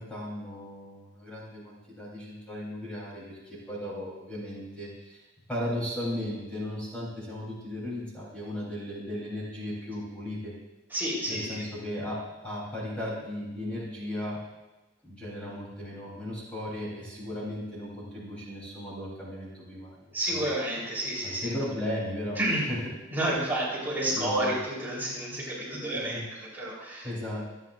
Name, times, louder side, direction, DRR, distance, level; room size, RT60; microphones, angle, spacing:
voice 1, 0.0-5.2 5.5-10.5 11.3-14.4 15.0-20.5 21.2-22.8 23.3-23.4 24.1-24.5 25.7-26.2 27.0-27.5, left 1 dB, 5° left, -7 dB, 3.8 m, -36 dB
voice 2, 10.9-11.6 20.1-21.5 22.4-22.7 23.1-27.1, right 1 dB, 10° right, -7 dB, 4.0 m, -30 dB
27.0 x 9.4 x 2.6 m, 1.1 s
head